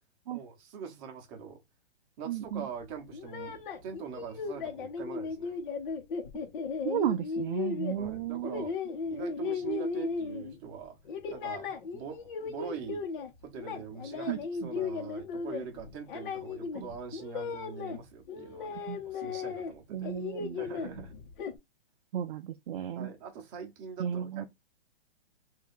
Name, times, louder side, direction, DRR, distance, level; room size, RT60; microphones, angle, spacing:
voice 1, 0.3-1.6 2.2-5.5 7.9-8.7 9.1-11.0 11.3-11.7 11.9-13.0 13.4-20.1 20.6-21.1 23.0-24.5, right 7 dB, 30° right, 1.0 m, -43 dB
voice 2, 2.3-2.6 6.8-8.6 14.3-14.7 16.7-16.9 18.9-19.0 19.9-20.6 22.1-23.1 24.0-24.4, right 10 dB, 55° right, 0.5 m, -34 dB
sound 1, 3.1-10.7 11.1-13.3 13.6-18.0 18.3-19.7 20.0-21.6, left 5 dB, 50° left, 1.1 m, -36 dB
3.3 x 2.7 x 3.6 m
hypercardioid pair, 145°, 32 cm